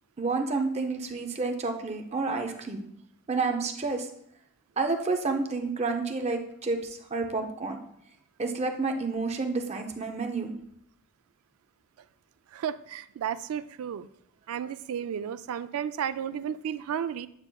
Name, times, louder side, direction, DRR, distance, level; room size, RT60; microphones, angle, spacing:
voice 1, 0.2-2.8 3.3-4.1 4.8-7.8 8.4-10.5, right 3 dB, 30° right, 4 dB, 0.5 m, -29 dB
voice 2, 12.5-14.1 14.5-17.3, right 8 dB, 80° right, 15 dB, 0.3 m, -33 dB
8.8 x 5.4 x 2.3 m, 0.72 s
head